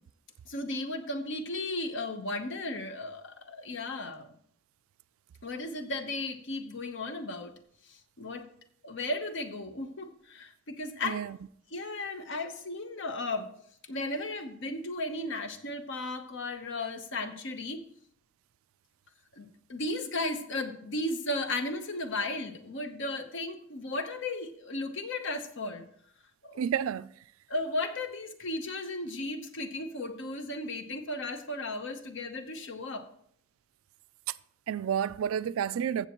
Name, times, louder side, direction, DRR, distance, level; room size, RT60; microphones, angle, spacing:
voice 1, 0.5-4.3 5.4-7.5 7.8-8.5 8.8-11.3 11.7-13.5 13.8-17.8 19.4-25.8 26.4-26.6 27.5-33.1, left 2 dB, 60° left, 1.0 m, -35 dB
voice 2, 11.0-11.4 26.6-27.1 34.7-36.1, right 8 dB, 80° right, 0.3 m, -30 dB
14.5 x 7.3 x 3.0 m
head